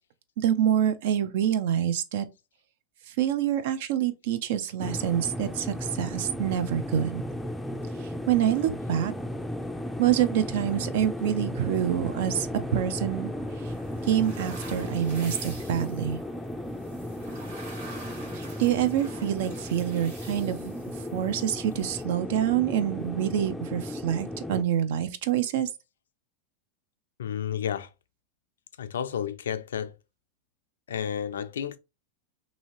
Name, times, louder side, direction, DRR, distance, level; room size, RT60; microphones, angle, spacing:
voice 1, 0.4-2.3 3.1-7.2 8.0-9.1 10.0-13.7 14.0-16.2 18.3-20.7 21.1-25.7, right 10 dB, 65° right, 0.4 m, -26 dB
sound 1, 4.8-24.6, left 1 dB, 5° left, 0.4 m, -35 dB
sound 2, 12.4-22.0, right 2 dB, 80° right, 1.6 m, -48 dB
voice 2, 27.2-27.9 28.8-29.9 30.9-31.8, left 8 dB, 80° left, 0.3 m, -31 dB
2.7 x 2.7 x 2.9 m
hypercardioid pair, 100°, 0 cm